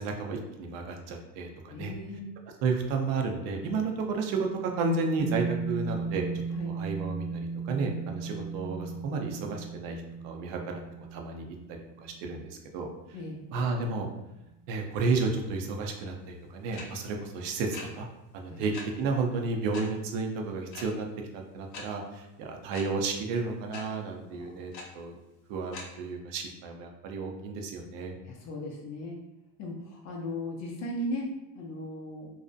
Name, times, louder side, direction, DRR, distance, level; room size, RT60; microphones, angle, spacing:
voice 1, 0.0-1.9 2.6-6.3 6.6-10.8 11.1-11.6 12.0-13.2 13.5-14.1 14.7-18.1 18.3-18.7 19.0-21.1 21.3-25.2 25.5-28.1, right 4 dB, 60° right, 2 dB, 0.6 m, -32 dB
voice 2, 1.7-2.3 6.5-6.7 13.1-13.4 18.5-18.6 24.3-24.5 28.2-29.2 29.6-32.3, left 1 dB, 35° left, -1 dB, 0.4 m, -37 dB
sound 1, 5.2-13.6, right 5 dB, 15° right, 0.7 m, -36 dB
sound 2, 16.7-16.8 17.7-17.8 18.7-18.8 19.7-19.8 20.7-20.8 21.7-21.8 22.7-22.8 23.7-23.8 24.7-24.8 25.7-25.8, left 4 dB, 80° left, 0.8 m, -40 dB
2.6 x 2.0 x 2.4 m, 0.95 s
supercardioid pair, 115°, 50 cm